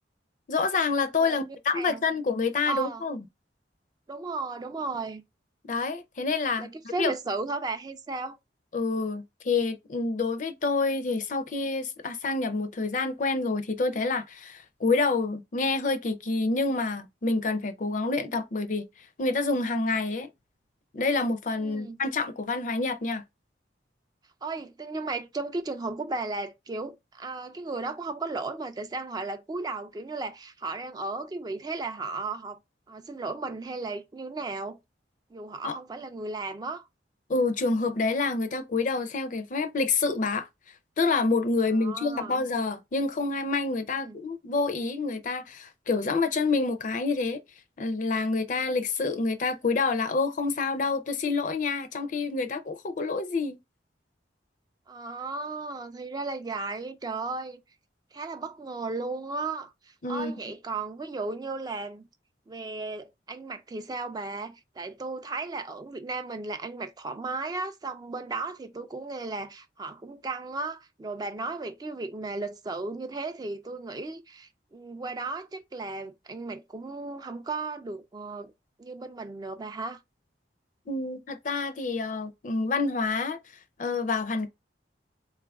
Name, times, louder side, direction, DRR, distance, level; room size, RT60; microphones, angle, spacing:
voice 1, 0.5-3.2 5.7-6.7 7.0-7.1 8.7-18.9 19.2-20.3 20.9-23.2 35.6-35.8 37.3-40.5 41.0-47.4 47.8-53.6 60.0-60.3 80.9-83.4 83.8-84.5, left 3 dB, 45° left, 0.5 m, -27 dB
voice 2, 1.2-2.0 2.7-3.0 4.1-5.2 6.6-8.4 21.6-22.0 24.4-32.6 32.9-34.8 35.3-36.8 41.7-42.4 43.9-44.2 54.9-57.6 58.1-62.1 62.5-78.5 78.8-80.0, right 3 dB, 20° right, 0.3 m, -35 dB
3.7 x 2.4 x 3.4 m
head